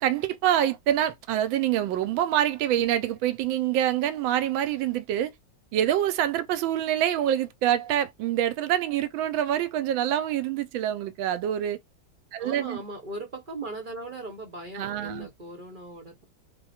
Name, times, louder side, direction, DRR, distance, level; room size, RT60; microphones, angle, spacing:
voice 1, 0.0-5.3 5.7-11.8 12.3-12.8 14.7-15.3, right 11 dB, 80° right, 1.4 m, -26 dB
voice 2, 12.4-16.2, right 2 dB, 40° right, 0.8 m, -38 dB
3.6 x 2.2 x 4.2 m
omnidirectional pair, 2.2 m